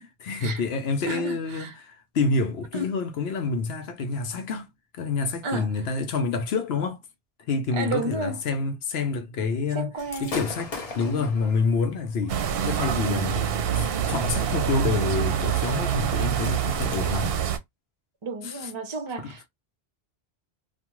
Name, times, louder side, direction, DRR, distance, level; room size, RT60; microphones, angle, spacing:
voice 1, 0.2-4.7 4.9-7.0 7.5-9.9 10.2-12.3 12.6-17.4 18.4-18.7 19.2-19.3, left 4 dB, 75° left, 0.9 m, -28 dB
voice 2, 1.1-1.8 2.7-2.9 5.4-5.7 7.7-8.4 9.7-10.3 11.0-11.3 18.2-19.5, right 3 dB, 35° right, 0.6 m, -32 dB
Gunshot gunfire / Fireworks, 10.0-17.0, left 3 dB, 40° left, 0.7 m, -42 dB
sound 1, 12.3-17.6, right 8 dB, 70° right, 0.7 m, -26 dB
2.4 x 2.3 x 2.9 m
omnidirectional pair, 1.1 m